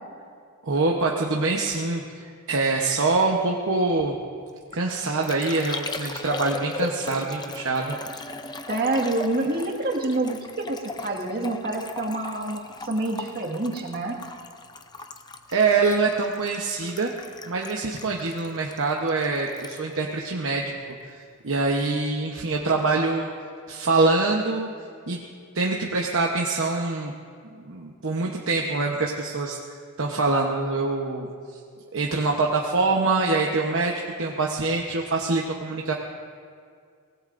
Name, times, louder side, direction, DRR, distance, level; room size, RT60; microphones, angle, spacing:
voice 1, 0.6-4.2 4.7-8.0 15.5-17.1 17.5-20.7 21.1-23.3 23.7-24.7 25.1-25.2 25.5-27.1 27.6-31.3 31.9-35.9, right 3 dB, 60° right, -1 dB, 1.0 m, -24 dB
Liquid, 4.5-21.1 21.4-21.9, left 3 dB, 20° left, 0.6 m, -38 dB
voice 2, 8.7-14.2, right 2 dB, 45° right, 0 dB, 1.9 m, -27 dB
24.0 x 19.0 x 2.6 m, 2.2 s
head